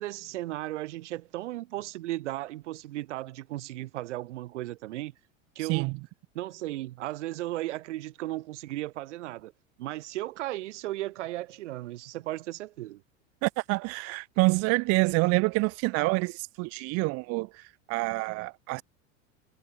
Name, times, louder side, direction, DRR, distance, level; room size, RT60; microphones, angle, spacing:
voice 1, 0.0-5.1 5.6-6.0 6.4-9.5 9.8-13.0, right 16 dB, 65° right, 1.8 m, -35 dB
voice 2, 13.4-17.5 17.9-18.8, right 27 dB, 40° right, 0.7 m, -27 dB
figure-of-eight pair, 85°, 38 cm